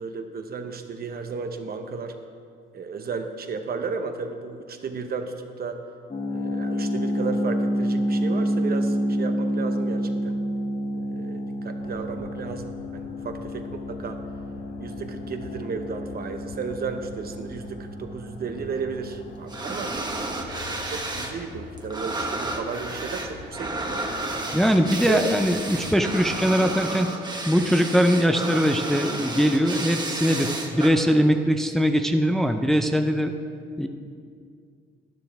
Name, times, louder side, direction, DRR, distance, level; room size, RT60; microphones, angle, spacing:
voice 1, 0.0-2.1 2.7-5.8 6.3-10.4 10.9-14.2 14.8-19.9 20.5-24.2 25.1-25.2, right 5 dB, 50° right, 7 dB, 0.9 m, -34 dB
sound 1, 6.1-20.9, equal, 30° left, 1.3 m, -29 dB
sound 2, 11.8-26.7, left 4 dB, 55° left, 1.1 m, -45 dB
sound 3, 19.5-21.4 21.6-30.9, right 2 dB, 20° right, 1.2 m, -32 dB
voice 2, 24.5-27.1 27.5-33.3 33.8-33.9, equal, ahead, 6 dB, 0.5 m, -21 dB
12.0 x 11.0 x 3.5 m, 2.3 s
cardioid pair, 90°, 20 cm